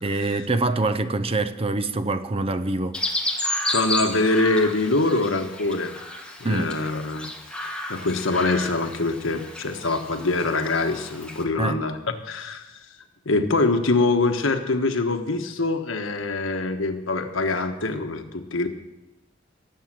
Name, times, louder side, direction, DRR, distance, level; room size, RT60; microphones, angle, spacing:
voice 1, 0.0-3.0 6.4-6.8 11.6-11.8, right 2 dB, 30° right, 0.7 m, -25 dB
Chirp tweet, 2.9-11.4, left 1 dB, 5° left, 1.6 m, -32 dB
voice 2, 3.7-5.9 6.4-12.0 12.2-12.6 13.2-18.7, left 3 dB, 85° left, 1.3 m, -24 dB
18.0 x 7.6 x 7.6 m
head